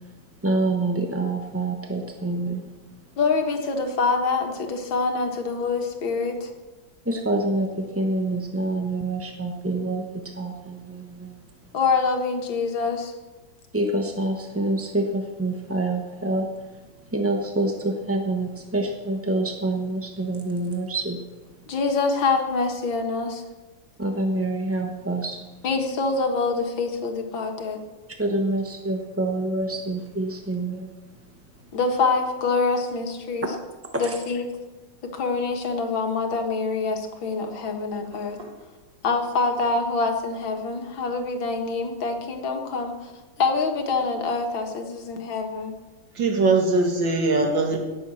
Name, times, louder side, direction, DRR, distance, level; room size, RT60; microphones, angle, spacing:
voice 1, 0.4-2.6 7.0-11.4 13.7-16.5 17.1-21.2 24.0-25.4 28.2-30.9 33.9-34.2, right 2 dB, 15° right, 3 dB, 0.5 m, -26 dB
voice 2, 3.2-6.5 11.7-13.1 21.7-23.4 25.6-27.8 31.7-33.5 34.0-34.5 35.1-38.4 39.0-43.1 43.4-45.7, left 4 dB, 75° left, 4 dB, 2.3 m, -25 dB
voice 3, 46.1-47.8, right 3 dB, 70° right, 2 dB, 2.8 m, -21 dB
18.0 x 7.0 x 7.0 m, 1.2 s
omnidirectional pair, 2.1 m